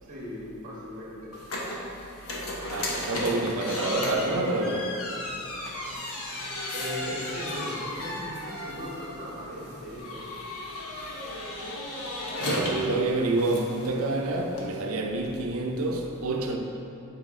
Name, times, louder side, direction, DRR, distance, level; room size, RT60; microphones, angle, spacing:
voice 1, 0.0-1.3 6.7-10.2, left 1 dB, 35° right, 1.3 m, -38 dB
sound 1, 1.3-14.7, left 1 dB, 80° left, 1.0 m, -35 dB
voice 2, 2.7-4.9 12.5-16.6, right 2 dB, 75° right, 0.6 m, -27 dB
7.6 x 4.8 x 3.7 m
head